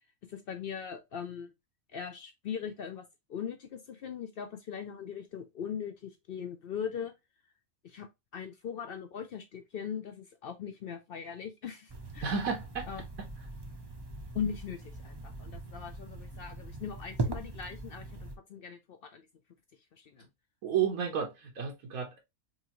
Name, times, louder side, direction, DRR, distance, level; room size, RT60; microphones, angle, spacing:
voice 1, 0.3-1.5 1.9-3.0 3.3-7.1 7.8-8.1 8.3-12.3 12.9-13.0 14.3-19.3 19.9-20.3, left 7 dB, 65° left, 0.6 m, -40 dB
sound 1, 11.9-18.3, right 2 dB, 30° right, 0.5 m, -40 dB
voice 2, 12.2-12.9 20.6-22.2, right 7 dB, 85° right, 1.4 m, -31 dB
5.4 x 2.5 x 2.9 m
omnidirectional pair, 1.4 m